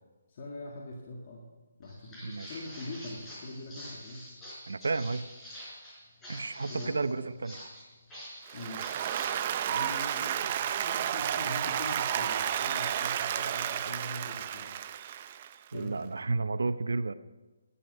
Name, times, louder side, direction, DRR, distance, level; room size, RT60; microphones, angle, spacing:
voice 1, 0.3-1.5 1.8-4.3 6.6-7.2 8.5-8.9 9.6-14.8 15.7-16.0, left 1 dB, 40° left, -1 dB, 1.8 m, -43 dB
Walk footsteps, 1.8-10.1, equal, 10° left, 4.4 m, -47 dB
voice 2, 2.2-2.6 4.7-5.3 6.3-7.6 15.7-17.1, right 3 dB, 85° right, 14 dB, 0.7 m, -32 dB
Applause, 8.5-15.7, right 10 dB, 30° right, 0.5 m, -32 dB
14.5 x 11.5 x 5.4 m, 1.2 s
hypercardioid pair, 165°, 0 cm